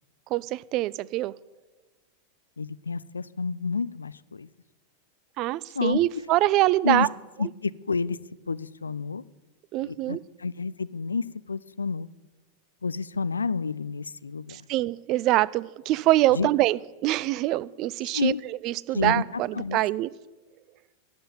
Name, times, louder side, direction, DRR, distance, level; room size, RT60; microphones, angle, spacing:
voice 1, 0.3-1.3 5.4-7.1 9.7-10.2 14.5-18.3 18.6-20.1, right 16 dB, 40° right, 21 dB, 0.4 m, -24 dB
voice 2, 2.6-4.5 5.7-6.0 6.8-7.1 7.4-8.2 8.5-9.2 9.8-12.1 12.8-14.7 16.3-16.5 18.1-18.4 18.9-19.8, left 4 dB, 75° left, 18 dB, 0.4 m, -29 dB
11.5 x 7.9 x 8.9 m, 1.1 s
figure-of-eight pair, 90°, 0 cm